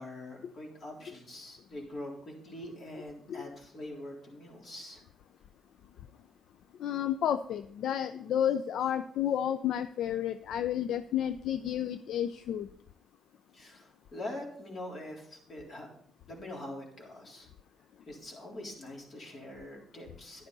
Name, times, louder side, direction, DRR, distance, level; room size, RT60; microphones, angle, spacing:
voice 1, 0.0-5.0 13.5-15.9 16.3-17.5 18.1-20.5, left 1 dB, 50° left, -1 dB, 3.8 m, -44 dB
voice 2, 6.8-12.7, left 10 dB, 75° left, 12 dB, 0.4 m, -31 dB
10.5 x 9.7 x 4.1 m, 0.65 s
cardioid pair, 90°, 0 cm